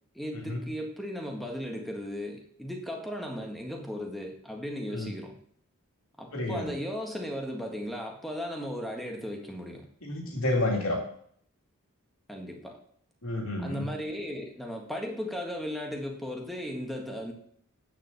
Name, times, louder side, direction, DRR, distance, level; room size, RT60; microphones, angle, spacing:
voice 1, 0.1-5.3 6.2-9.9 12.3-12.8 13.6-17.3, equal, ahead, 1 dB, 1.7 m, -36 dB
voice 2, 6.3-6.7 10.0-11.0 13.2-13.9, left 1 dB, 70° left, 0 dB, 3.1 m, -30 dB
8.9 x 7.0 x 7.1 m, 0.62 s
head